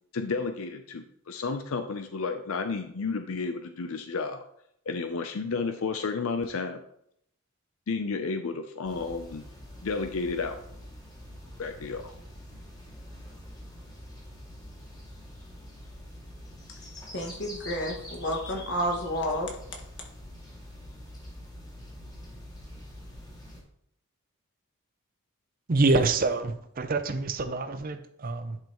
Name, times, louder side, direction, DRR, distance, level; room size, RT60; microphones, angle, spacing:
voice 1, 0.1-4.4 4.9-6.8 7.9-9.5 9.8-10.6 11.6-12.1, left 4 dB, 70° left, 7 dB, 0.5 m, -32 dB
sound 1, 8.8-23.6, equal, 20° left, 2.2 m, -45 dB
voice 2, 17.1-19.5, equal, 55° left, 0 dB, 1.8 m, -30 dB
voice 3, 25.7-28.6, right 3 dB, 40° right, 10 dB, 0.5 m, -26 dB
10.0 x 5.5 x 3.0 m, 0.70 s
head